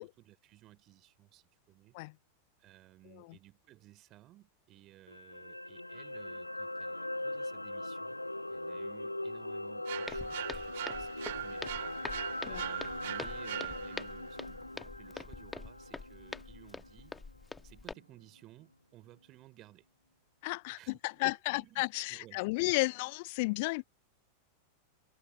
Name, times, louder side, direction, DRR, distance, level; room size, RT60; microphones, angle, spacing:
voice 1, 0.0-2.0 2.6-8.2 8.5-17.2 17.6-19.9 20.7-22.8, right 15 dB, 35° right, 3.9 m, -58 dB
sound 1, 5.1-17.4 17.7-17.9, left 1 dB, 85° left, 0.8 m, -41 dB
sound 2, 9.9-14.2, right 14 dB, 55° right, 2.7 m, -41 dB
Walk footsteps, 10.1-17.9, left 4 dB, 10° left, 1.6 m, -45 dB
voice 2, 20.4-23.8, left 26 dB, 50° left, 0.4 m, -33 dB
figure-of-eight pair, 90°, 0 cm